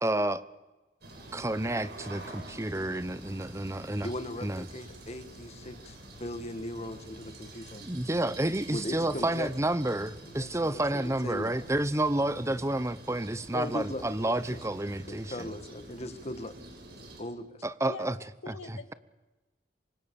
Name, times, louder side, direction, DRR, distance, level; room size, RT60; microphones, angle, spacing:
voice 1, 0.0-0.4 1.3-4.1 4.4-4.7 7.8-15.3 17.6-18.2 18.5-18.8, right 1 dB, 15° right, 15 dB, 0.9 m, -30 dB
sound 1, 1.0-17.2, right 1 dB, 55° right, 7.1 m, -47 dB
voice 2, 4.0-7.8 8.7-9.5 10.3-11.6 12.5-12.6 13.1-13.2 13.5-14.6 15.0-16.5 17.2-17.7, left 1 dB, 35° left, 10 dB, 1.9 m, -39 dB
voice 3, 18.4-18.9, left 4 dB, 80° left, 8 dB, 2.5 m, -43 dB
28.0 x 25.0 x 7.1 m, 1.1 s
head